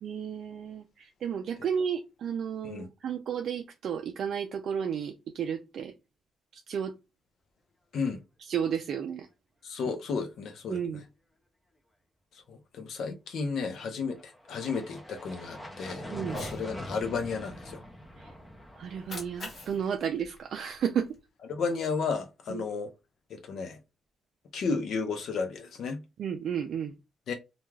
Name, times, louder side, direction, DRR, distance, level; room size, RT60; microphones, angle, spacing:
voice 1, 0.0-5.9 6.5-6.9 8.5-9.3 10.7-11.0 16.1-16.4 18.2-18.3 18.8-21.1 22.5-22.6 26.2-26.9, right 8 dB, 65° right, 0.3 m, -32 dB
voice 2, 9.6-11.0 12.3-16.0 16.4-17.8 21.5-22.9 23.3-23.8 24.5-26.0 27.3-27.4, left 5 dB, 70° left, 0.5 m, -33 dB
sound 1, 14.0-19.9, equal, 15° left, 0.6 m, -43 dB
Cat, 16.2-16.6 18.8-21.2, left 1 dB, 45° left, 1.2 m, -44 dB
2.3 x 2.2 x 3.1 m
cardioid pair, 125°, 0 cm